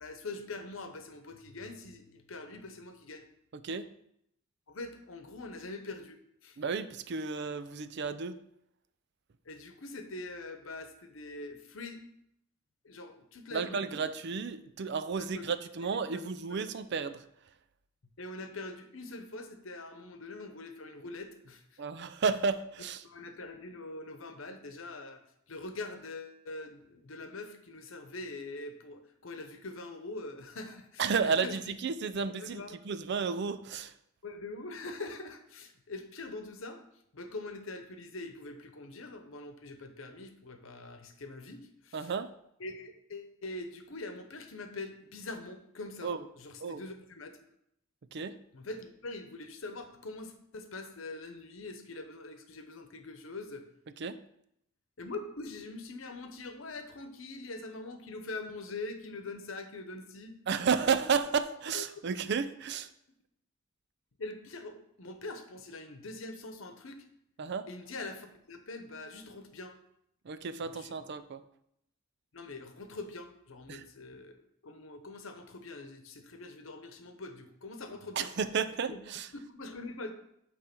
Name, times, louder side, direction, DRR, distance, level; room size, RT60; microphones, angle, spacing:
voice 1, 0.0-3.3 4.7-6.6 9.5-12.0 12.8-13.8 15.2-15.5 15.9-16.5 18.2-21.8 22.3-22.4 23.0-25.2 25.5-31.7 32.1-32.8 34.2-36.8 37.1-42.1 42.6-47.3 48.5-53.6 55.0-60.4 61.7-61.8 64.2-67.0 67.7-69.7 70.7-70.9 72.3-78.3 78.9-79.0 79.3-80.1, left 2 dB, 80° left, 7 dB, 0.9 m, -43 dB
voice 2, 6.6-8.4 13.5-17.2 21.8-23.0 31.0-33.9 41.9-42.3 46.0-46.2 46.6-46.8 48.1-48.4 54.0-54.2 60.5-62.9 67.4-67.7 70.3-71.4 73.7-73.8 78.2-79.3, right 5 dB, 55° right, 11 dB, 0.4 m, -32 dB
8.7 x 3.2 x 5.9 m, 0.76 s
head